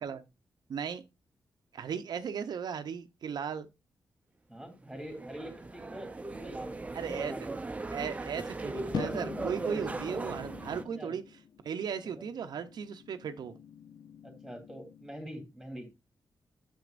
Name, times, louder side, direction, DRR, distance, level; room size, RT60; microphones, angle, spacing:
voice 1, 0.7-1.0 1.7-3.7 6.9-7.3 7.9-11.2 11.6-13.6, right 7 dB, 70° right, 0.6 m, -36 dB
voice 2, 4.5-7.6 11.0-11.2 12.0-12.3 14.2-15.9, equal, ahead, 2.2 m, -45 dB
sound 1, 4.9-10.8, right 3 dB, 20° right, 0.6 m, -38 dB
sound 2, 8.9-15.2, left 7 dB, 70° left, 0.5 m, -44 dB
9.1 x 6.9 x 2.5 m
wide cardioid pair, 135°, 7 cm